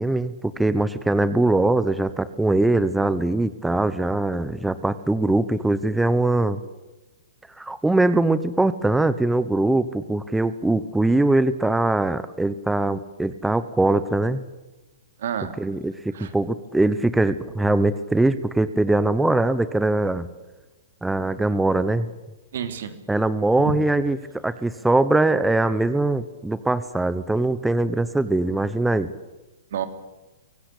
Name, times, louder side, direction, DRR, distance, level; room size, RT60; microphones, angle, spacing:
voice 1, 0.0-6.6 7.6-14.4 15.6-20.3 21.0-22.1 23.1-24.2 24.4-29.1, right 2 dB, 5° right, 13 dB, 1.0 m, -22 dB
voice 2, 15.2-15.6 16.1-16.3 22.5-22.9 23.6-23.7 29.7-29.9, right 8 dB, 70° right, 8 dB, 3.4 m, -29 dB
24.5 x 17.5 x 8.6 m, 1.1 s
hypercardioid pair, 130°, 0 cm